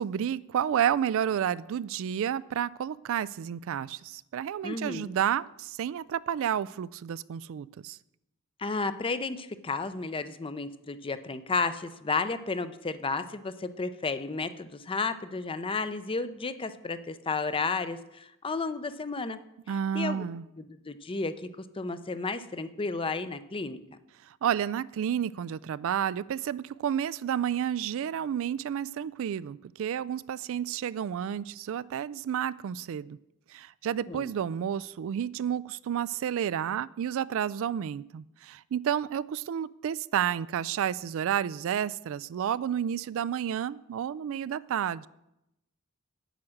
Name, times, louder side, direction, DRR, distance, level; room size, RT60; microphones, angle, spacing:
voice 1, 0.0-8.0 19.7-20.4 24.3-33.2 33.5-45.1, right 9 dB, 65° right, 19 dB, 0.3 m, -31 dB
voice 2, 4.6-5.1 8.6-19.4 19.7-20.2 20.6-21.3 21.7-23.8 34.1-34.3, left 4 dB, 25° left, 12 dB, 0.6 m, -32 dB
9.1 x 8.5 x 6.4 m, 0.89 s
head